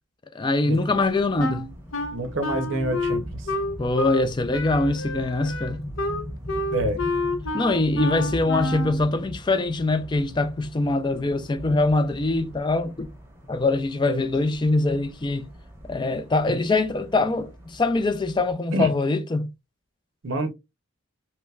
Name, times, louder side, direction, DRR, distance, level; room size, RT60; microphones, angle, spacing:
voice 1, 0.3-1.7 3.8-5.8 7.5-13.1 13.5-15.5 15.9-19.5, left 2 dB, 20° left, 0.3 m, -23 dB
sound 1, 0.7-18.5, equal, 10° right, 0.9 m, -40 dB
Wind instrument woodwind instrument, 1.4-4.3 4.5-9.0, left 2 dB, 65° left, 0.6 m, -29 dB
voice 2, 2.1-3.2 6.7-7.0 14.1-14.2 18.7-18.9 20.2-20.5, right 1 dB, 60° right, 0.6 m, -26 dB
3.3 x 3.0 x 2.3 m
head